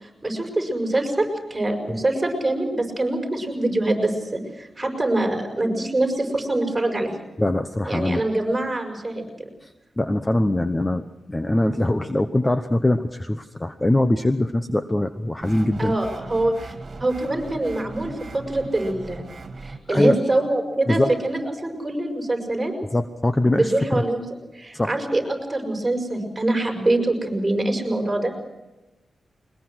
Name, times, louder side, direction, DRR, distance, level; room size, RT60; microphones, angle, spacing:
voice 1, 0.0-7.1 7.9-9.5 15.8-19.2 19.6-22.7 23.4-24.2 24.5-28.3, right 2 dB, 20° right, 3 dB, 6.3 m, -24 dB
voice 2, 7.4-8.2 9.6-9.7 10.0-16.0 19.9-20.2 20.9-21.1 22.9-24.0 24.7-25.0, left 1 dB, 20° left, 9 dB, 1.0 m, -22 dB
sound 1, 15.4-19.8, right 3 dB, 50° right, 2.4 m, -39 dB
22.0 x 21.0 x 6.3 m, 1.0 s
wide cardioid pair, 90°, 0 cm